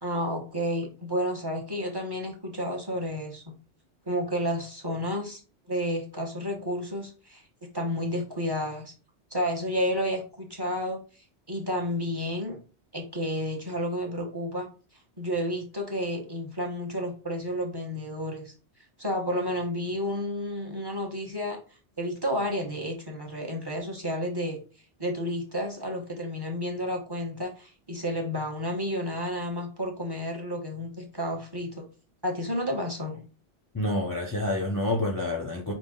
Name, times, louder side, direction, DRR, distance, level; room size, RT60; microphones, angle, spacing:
voice 1, 0.0-3.5 4.1-5.4 5.7-7.4 7.7-8.9 9.3-11.0 11.5-12.6 12.9-14.7 15.2-18.5 19.0-21.6 22.0-24.6 25.0-31.8 32.2-33.3, equal, 20° right, 2 dB, 0.9 m, -31 dB
voice 2, 33.7-35.7, left 1 dB, 25° left, 0 dB, 0.5 m, -28 dB
5.2 x 2.4 x 3.7 m, 0.35 s
omnidirectional pair, 1.2 m